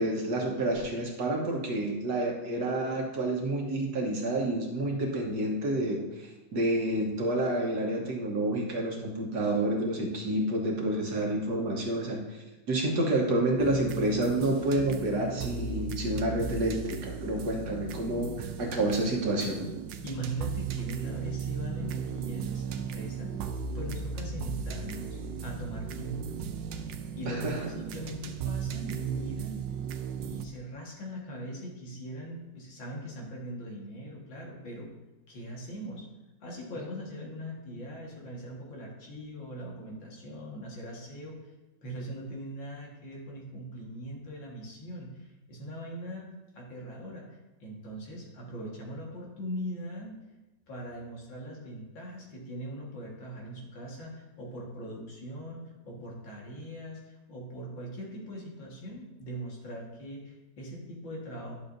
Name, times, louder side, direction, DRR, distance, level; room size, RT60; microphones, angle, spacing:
voice 1, 0.0-19.7 27.3-27.7, right 1 dB, 60° right, 0 dB, 1.6 m, -29 dB
sound 1, 13.6-30.4, right 6 dB, 75° right, 1.3 m, -36 dB
voice 2, 20.0-23.3 23.7-26.4 27.2-29.6 30.2-34.9 35.3-36.1 36.4-41.5 41.8-50.2 50.7-61.5, equal, 80° left, -2 dB, 2.4 m, -40 dB
10.5 x 7.0 x 2.6 m, 1.1 s
omnidirectional pair, 2.1 m